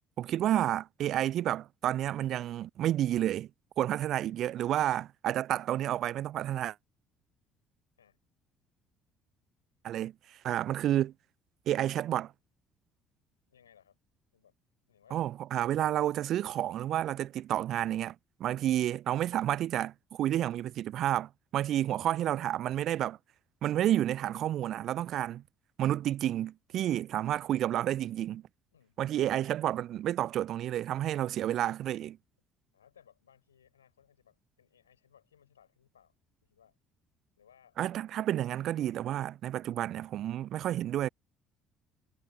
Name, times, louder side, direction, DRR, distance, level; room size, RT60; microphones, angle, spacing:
voice 1, 0.2-3.5 3.8-6.8 9.8-11.1 11.7-12.3 15.1-23.2 23.6-25.4 25.8-28.4 29.0-32.2 37.8-41.1, right 12 dB, 50° right, 0.4 m, -30 dB
voice 2, 13.5-14.0 14.3-14.6 14.9-15.2 21.8-22.3 26.0-26.4 26.7-27.1 28.7-29.1 32.7-36.2 36.4-36.8 37.4-37.8, left 9 dB, 80° left, 5.5 m, -64 dB
figure-of-eight pair, 55°, 0 cm